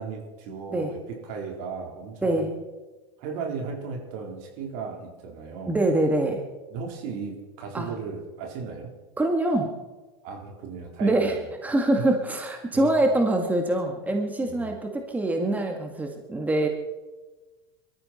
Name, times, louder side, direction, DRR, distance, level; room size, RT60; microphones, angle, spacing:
voice 1, 0.0-2.5 3.2-5.8 6.7-8.9 10.2-11.4 12.0-12.1 12.7-12.9 14.4-14.7, right 5 dB, 60° right, 2 dB, 4.1 m, -36 dB
voice 2, 5.7-6.4 7.7-7.9 9.2-9.7 11.0-16.7, right 1 dB, 10° right, 3 dB, 2.0 m, -24 dB
21.5 x 13.5 x 4.4 m, 1.2 s
hypercardioid pair, 100°, 13 cm